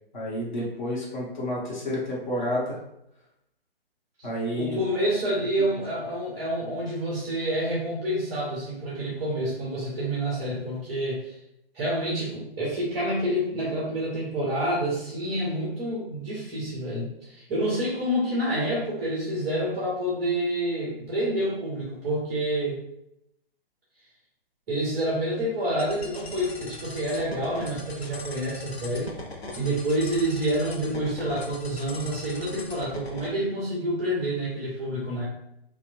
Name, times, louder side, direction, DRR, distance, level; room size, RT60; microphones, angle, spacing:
voice 1, 0.1-2.8 4.2-4.8 5.6-5.7, left 1 dB, 50° left, -4 dB, 1.1 m, -30 dB
voice 2, 4.6-11.3 11.7-22.8 24.7-29.1 29.6-35.3, right 1 dB, 10° right, -6 dB, 0.5 m, -28 dB
sound 1, 25.8-33.3, left 3 dB, 85° left, 0.5 m, -41 dB
2.9 x 2.1 x 2.5 m, 0.80 s
figure-of-eight pair, 130°, 30 cm